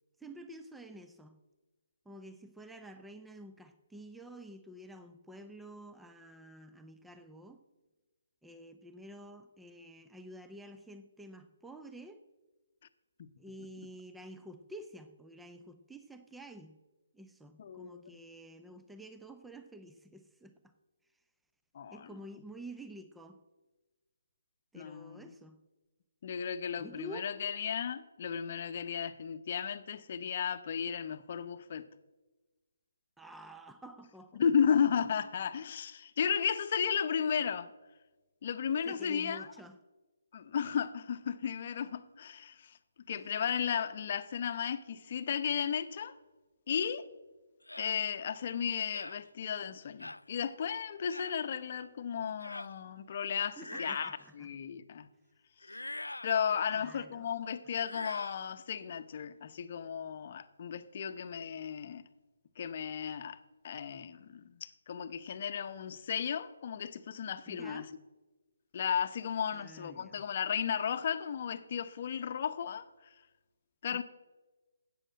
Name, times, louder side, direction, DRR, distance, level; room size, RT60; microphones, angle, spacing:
voice 1, 0.2-1.4 2.1-7.6 8.4-12.2 13.4-16.8 17.1-20.5 21.9-23.4 24.7-25.6 26.8-27.3 33.2-34.4 38.8-39.8 53.6-54.5 56.7-57.3 67.5-67.9 69.5-70.3 73.9-74.0, right 1 dB, 5° right, 0.6 m, -50 dB
voice 2, 17.6-18.2 21.7-22.1 24.7-25.3 26.2-31.9 34.3-37.7 38.4-39.5 40.3-42.8 43.1-46.2 46.7-47.0 47.8-55.1 56.2-62.0 62.6-63.4 63.6-67.9 68.7-73.1 73.8-74.0, left 7 dB, 45° left, 0.8 m, -34 dB
sound 1, 47.7-48.0 48.9-49.2 50.0-50.2 51.1-51.4 52.4-52.7 53.5-54.3 55.6-56.3 57.8-58.4, left 2 dB, 90° left, 0.3 m, -43 dB
13.0 x 8.8 x 7.5 m
figure-of-eight pair, 145°, 0 cm